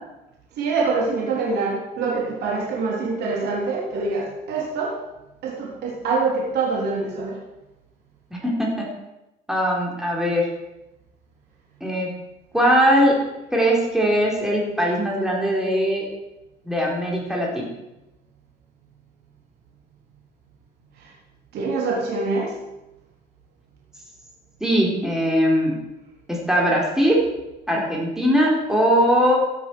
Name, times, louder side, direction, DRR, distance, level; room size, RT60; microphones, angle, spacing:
voice 1, 0.6-5.0 5.4-7.4 21.0-21.1 21.5-22.5, right 4 dB, 75° right, -3 dB, 3.6 m, -25 dB
voice 2, 8.3-8.9 9.5-10.5 11.8-12.1 12.5-13.1 13.5-16.1 16.7-17.7 24.6-25.7 26.3-27.2 27.7-29.4, equal, 5° right, -2 dB, 3.9 m, -20 dB
15.5 x 8.4 x 6.1 m, 0.96 s
cardioid pair, 110°, 17 cm